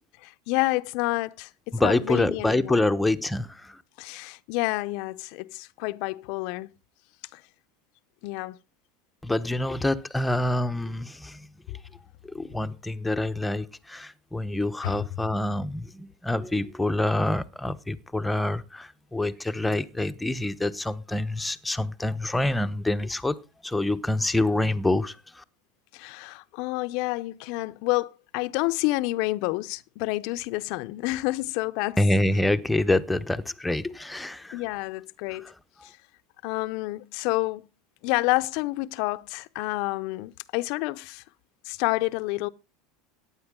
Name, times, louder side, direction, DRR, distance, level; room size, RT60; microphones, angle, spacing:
voice 1, 0.2-1.5 1.7-2.9 4.0-6.7 7.3-7.4 8.2-8.6 14.8-15.0 25.9-32.0 34.5-35.5 35.8-35.9 36.4-37.7 38.0-41.2 41.6-42.5, left 21 dB, 65° left, 0.6 m, -29 dB
voice 2, 1.7-3.8 9.2-11.5 12.2-23.4 23.6-25.4 32.0-34.6 35.3-35.5, left 1 dB, 5° left, 0.9 m, -26 dB
14.5 x 9.7 x 3.7 m
supercardioid pair, 115°, 0 cm